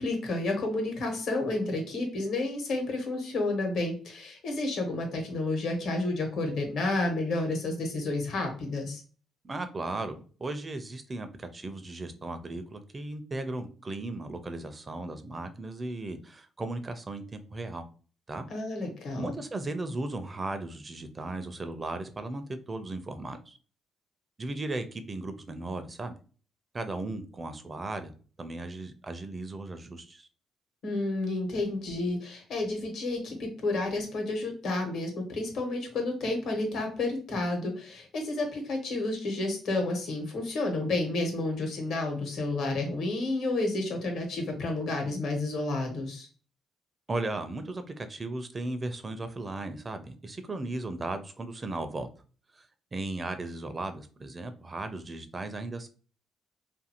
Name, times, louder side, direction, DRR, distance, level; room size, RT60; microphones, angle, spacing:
voice 1, 0.0-9.0 18.5-19.3 30.8-46.3, left 2 dB, 70° left, 3 dB, 1.1 m, -30 dB
voice 2, 9.4-17.8 18.3-18.5 19.1-23.6 24.4-26.1 26.7-28.1 28.4-30.3 47.1-52.1 52.5-52.7 52.9-55.9, right 2 dB, 30° right, 9 dB, 0.4 m, -36 dB
2.6 x 2.5 x 2.8 m, 0.39 s
cardioid pair, 90°, 0 cm